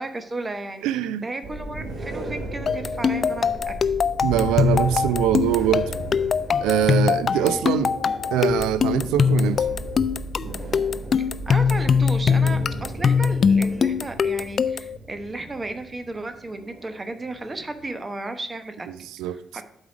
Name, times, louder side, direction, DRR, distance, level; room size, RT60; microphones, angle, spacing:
voice 1, 0.0-0.8 1.2-3.7 7.3-7.7 11.5-19.6, right 2 dB, 30° right, 9 dB, 1.0 m, -34 dB
voice 2, 0.8-1.3 4.2-5.9 6.6-7.9 8.3-9.6 18.9-19.4, right 10 dB, 80° right, 15 dB, 0.4 m, -23 dB
sound 1, 1.4-17.9, right 1 dB, 50° right, 2.0 m, -35 dB
sound 2, 2.7-15.0, left 6 dB, 55° left, 0.3 m, -22 dB
8.2 x 4.8 x 4.9 m, 0.81 s
hypercardioid pair, 45°, 0 cm